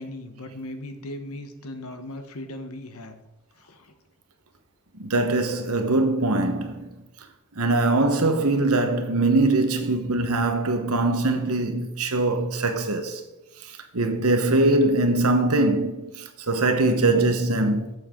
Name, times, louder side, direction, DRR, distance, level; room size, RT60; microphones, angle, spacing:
voice 1, 0.0-3.1 3.6-3.9, left 1 dB, 75° left, 1.2 m, -38 dB
voice 2, 4.9-6.8 7.6-13.2 13.6-17.9, right 2 dB, 80° right, 1.2 m, -22 dB
11.5 x 7.8 x 3.8 m
head